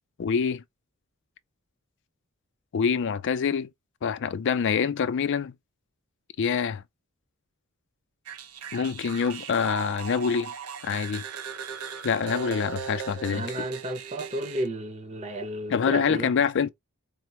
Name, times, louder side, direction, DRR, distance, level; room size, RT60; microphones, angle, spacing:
voice 1, 0.2-0.6 2.7-3.7 4.0-5.5 6.4-6.8 8.7-10.5 10.8-11.2 12.0-13.7 15.7-16.7, left 6 dB, 55° left, 0.4 m, -26 dB
sound 1, 8.3-14.7, right 7 dB, 80° right, 0.6 m, -38 dB
voice 2, 13.3-16.3, right 1 dB, 30° right, 0.8 m, -32 dB
4.4 x 2.1 x 2.9 m
head